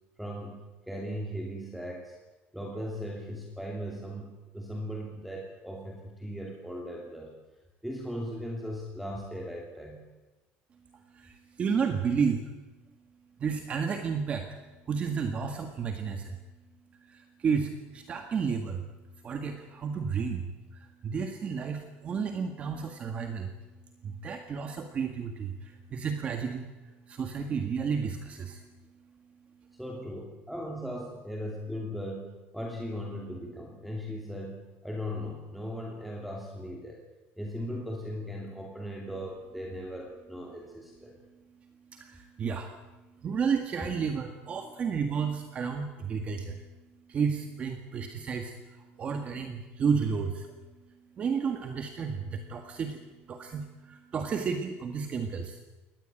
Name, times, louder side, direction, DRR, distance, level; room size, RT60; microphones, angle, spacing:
voice 1, 0.2-2.2 2.5-7.3 7.8-10.0 29.7-37.0 37.4-41.1, equal, ahead, 0 dB, 2.8 m, -38 dB
voice 2, 11.1-12.5 13.4-14.6 14.9-16.4 17.1-18.8 19.2-23.5 24.0-28.6 41.9-42.7 43.2-46.7 47.1-50.5 51.2-53.0 53.3-55.6, right 6 dB, 30° right, 6 dB, 1.7 m, -32 dB
24.0 x 19.0 x 8.9 m, 1.1 s
cardioid pair, 170°, 4 cm